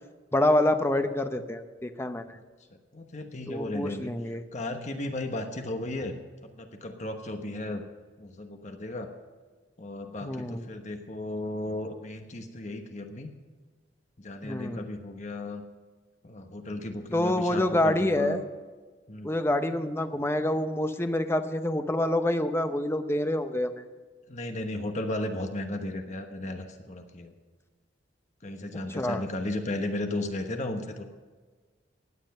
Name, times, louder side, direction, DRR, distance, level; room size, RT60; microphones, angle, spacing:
voice 1, 0.3-2.4 3.5-4.4 10.2-10.7 14.4-14.9 17.1-18.4 19.2-23.8 28.9-29.2, left 1 dB, 15° left, 8 dB, 0.8 m, -27 dB
voice 2, 2.9-4.1 4.5-6.1 6.4-7.8 8.2-9.1 9.8-13.3 14.2-15.6 16.2-18.4 19.1-19.3 24.3-27.3 28.4-31.0, left 1 dB, 40° left, 5 dB, 1.2 m, -35 dB
16.5 x 10.0 x 5.5 m, 1.4 s
head